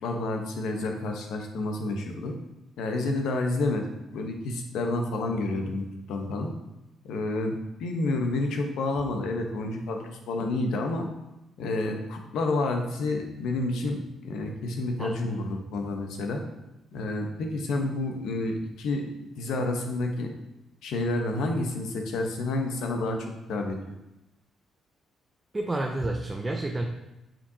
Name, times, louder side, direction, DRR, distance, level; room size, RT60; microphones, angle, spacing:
voice 1, 0.0-2.4 2.8-6.5 7.0-11.1 11.6-16.4 16.9-19.0 19.4-20.3 20.8-23.8, left 2 dB, 80° left, 3 dB, 1.0 m, -29 dB
voice 2, 15.0-15.4 25.5-26.8, right 2 dB, 20° right, 2 dB, 0.6 m, -30 dB
7.2 x 5.6 x 2.8 m, 0.94 s
cardioid pair, 90°, 0 cm